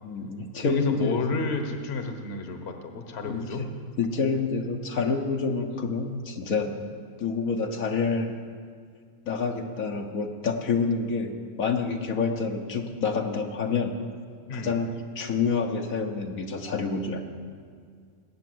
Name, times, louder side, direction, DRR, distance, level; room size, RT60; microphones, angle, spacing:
voice 1, 0.0-1.5 3.2-3.7 4.0-6.7 7.2-8.4 9.3-11.3 11.6-13.9 14.5-14.9 15.1-17.2, left 4 dB, 70° left, 2 dB, 1.5 m, -28 dB
voice 2, 0.6-3.7 14.5-14.7, left 3 dB, 50° left, 6 dB, 1.4 m, -31 dB
19.0 x 8.9 x 7.8 m, 2.1 s
omnidirectional pair, 1.5 m